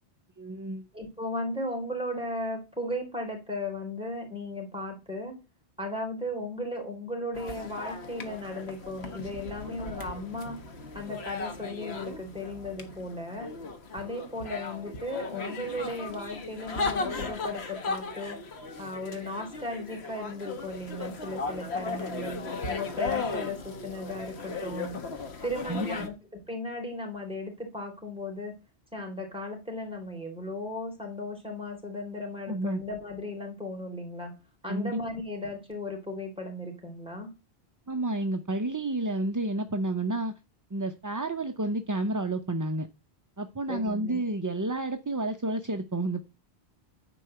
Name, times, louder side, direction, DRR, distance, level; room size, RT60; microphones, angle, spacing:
voice 1, 0.4-0.9 25.7-25.9 32.5-32.8 34.6-35.0 37.9-40.3 40.7-42.9 43.4-46.2, right 2 dB, 25° right, 7 dB, 0.5 m, -30 dB
voice 2, 0.9-5.4 5.8-10.6 10.9-13.5 13.9-18.4 18.8-22.4 22.7-25.0 25.4-28.5 28.9-34.3 34.6-37.3 43.7-44.2, left 1 dB, 5° right, 1 dB, 3.6 m, -36 dB
sound 1, 7.3-26.1, left 3 dB, 75° left, 1.5 m, -36 dB
9.9 x 4.6 x 7.7 m, 0.28 s
omnidirectional pair, 1.1 m